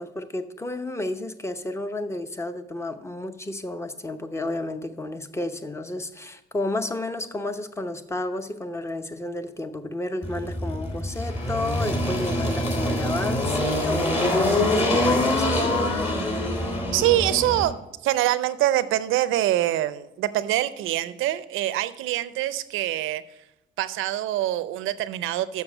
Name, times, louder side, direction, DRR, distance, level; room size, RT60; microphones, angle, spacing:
voice 1, 0.0-15.6, left 2 dB, 15° left, 0.8 m, -31 dB
Engine, 10.2-17.6, left 1 dB, 35° left, 2.9 m, -24 dB
voice 2, 16.9-17.7 18.0-23.2 23.8-25.6, right 14 dB, 90° right, 0.5 m, -24 dB
7.1 x 6.3 x 7.0 m
cardioid pair, 90°, 20 cm